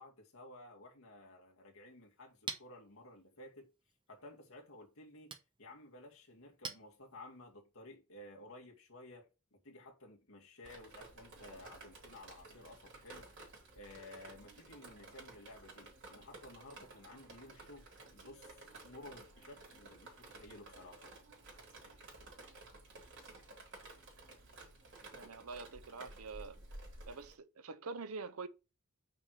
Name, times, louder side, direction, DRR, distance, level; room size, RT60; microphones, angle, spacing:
voice 1, 0.0-3.7 4.1-5.3 5.6-13.3 13.7-21.1, left 2 dB, 65° left, 2.4 m, -55 dB
Chink clink, 1.8-7.5, right 5 dB, 20° right, 1.0 m, -51 dB
Drip, 10.6-27.3, right 2 dB, 55° right, 3.8 m, -54 dB
voice 2, 25.1-26.6 27.1-28.5, right 4 dB, 75° right, 0.8 m, -45 dB
6.2 x 4.7 x 6.6 m
head